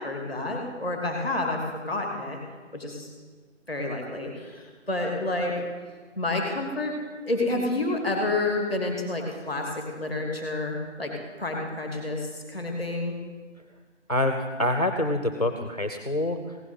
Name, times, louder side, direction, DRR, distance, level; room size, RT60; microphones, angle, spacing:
voice 1, 0.0-2.4 2.7-3.1 3.7-5.6 6.2-7.0 7.2-13.2, left 2 dB, 5° right, 1 dB, 2.3 m, -29 dB
voice 2, 14.1-16.6, left 1 dB, 30° left, 6 dB, 0.7 m, -26 dB
16.0 x 6.1 x 9.4 m, 1.5 s
figure-of-eight pair, 170°, 37 cm